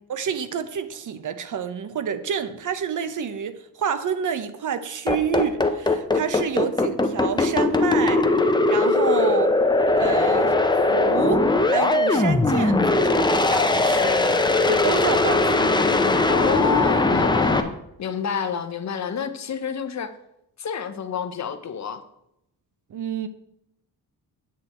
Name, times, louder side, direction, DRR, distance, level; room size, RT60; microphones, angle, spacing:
voice 1, 0.1-9.6 10.0-15.7 22.9-23.3, right 7 dB, 55° right, 0.7 m, -28 dB
sound 1, 5.1-17.6, left 2 dB, 10° left, 0.6 m, -20 dB
voice 2, 15.5-20.1 20.6-22.0, left 7 dB, 45° left, 0.8 m, -29 dB
8.4 x 6.3 x 4.3 m
cardioid pair, 100°, 38 cm